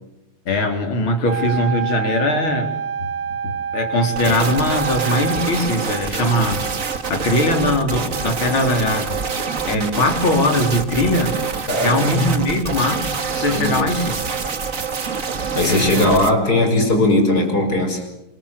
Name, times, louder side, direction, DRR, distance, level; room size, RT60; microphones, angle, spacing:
voice 1, 0.5-2.7 3.4-6.7 7.1-9.2 9.6-11.4 11.8-14.2 15.6-16.4, left 1 dB, 65° left, 4 dB, 4.6 m, -21 dB
Wind instrument woodwind instrument, 1.3-5.7, right 8 dB, 55° right, 2.6 m, -27 dB
sound 1, 4.1-16.3, right 5 dB, 40° right, 1.9 m, -26 dB
voice 2, 11.7-12.3 13.5-14.0 15.5-18.1, left 1 dB, 45° left, 5 dB, 6.6 m, -19 dB
28.5 x 22.5 x 8.4 m, 0.87 s
omnidirectional pair, 2.4 m